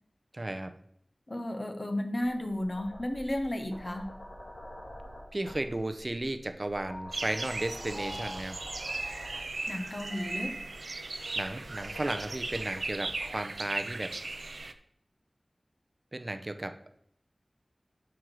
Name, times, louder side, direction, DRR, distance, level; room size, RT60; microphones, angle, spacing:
voice 1, 0.3-0.7 5.3-8.6 11.3-14.2 16.1-16.8, right 1 dB, 45° right, 8 dB, 0.6 m, -34 dB
voice 2, 1.3-4.1 9.7-10.5, left 1 dB, 50° left, 5 dB, 1.1 m, -33 dB
sound 1, 2.2-13.3 14.2-14.6, equal, 90° left, 1.9 m, -48 dB
Piano, 6.9-13.6, left 1 dB, 70° left, 2.8 m, -50 dB
sound 2, 7.1-14.7, right 3 dB, 90° right, 0.5 m, -37 dB
6.2 x 4.7 x 6.1 m, 0.71 s
wide cardioid pair, 45°, 0 cm